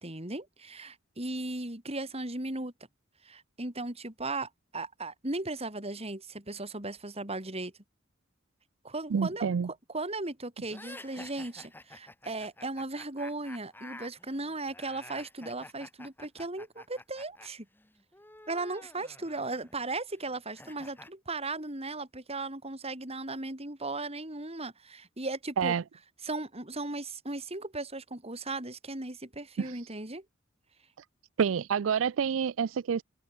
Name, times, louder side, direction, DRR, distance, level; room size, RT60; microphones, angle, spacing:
voice 1, 0.0-2.7 3.2-7.7 8.8-9.5 9.9-17.7 18.5-25.7 26.2-30.2, right 2 dB, 30° right, 5.0 m, -37 dB
voice 2, 9.1-9.7 25.6-25.8 29.6-29.7 31.4-33.0, right 7 dB, 85° right, 0.4 m, -28 dB
sound 1, 10.7-17.5 17.7-21.1, left 2 dB, 10° left, 3.6 m, -50 dB
head